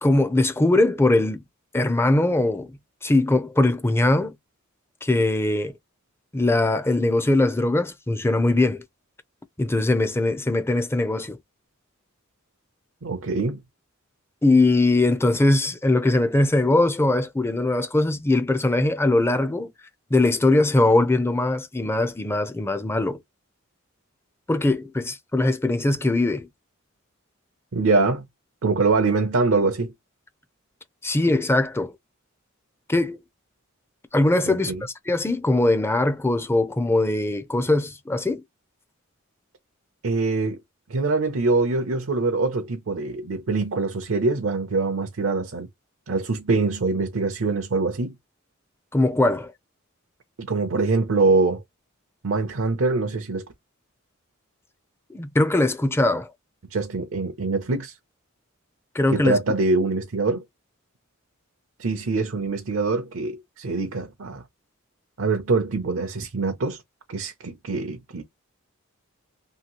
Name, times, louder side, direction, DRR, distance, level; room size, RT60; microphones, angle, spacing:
voice 1, 0.0-1.4 1.7-4.3 5.0-5.7 6.3-8.8 9.6-11.4 14.4-19.7 20.1-23.2 24.5-26.5 31.0-31.9 32.9-33.2 34.1-38.4 48.9-49.5 55.1-56.3 58.9-59.4, left 2 dB, 10° left, 0.5 m, -21 dB
voice 2, 13.0-13.6 27.7-28.3 28.6-29.9 34.5-34.8 40.0-40.6 40.9-45.7 46.1-48.2 50.4-51.6 52.2-53.5 56.7-58.0 59.1-60.4 61.8-64.4 65.2-66.8 67.1-68.2, right 3 dB, 65° right, 0.6 m, -24 dB
2.9 x 2.6 x 2.9 m
head